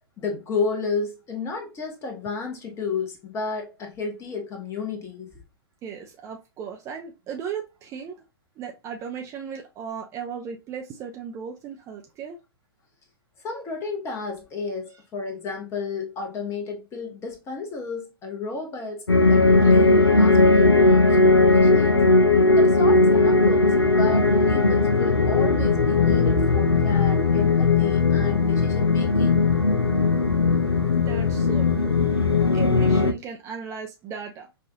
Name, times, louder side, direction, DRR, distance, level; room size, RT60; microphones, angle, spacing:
voice 1, 0.2-5.3 13.4-22.1 22.6-29.5 32.1-32.3, left 4 dB, 20° left, 1.1 m, -32 dB
voice 2, 5.8-8.2 8.6-12.4 30.9-32.0 32.5-34.5, right 7 dB, 20° right, 0.5 m, -36 dB
sound 1, 19.1-33.1, left 3 dB, 90° left, 0.5 m, -18 dB
5.4 x 2.5 x 2.4 m
figure-of-eight pair, 110°, 13 cm